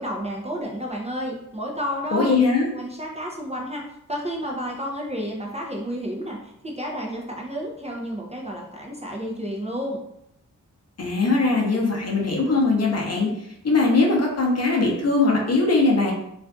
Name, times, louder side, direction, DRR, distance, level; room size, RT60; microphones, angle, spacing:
voice 1, 0.0-2.3 2.7-3.8 4.1-10.0, equal, 20° right, -1 dB, 0.5 m, -31 dB
voice 2, 2.1-2.7 11.0-13.3 13.6-16.1, left 3 dB, 50° left, -1 dB, 0.7 m, -20 dB
2.4 x 2.4 x 2.2 m, 0.78 s
cardioid pair, 60°, 33 cm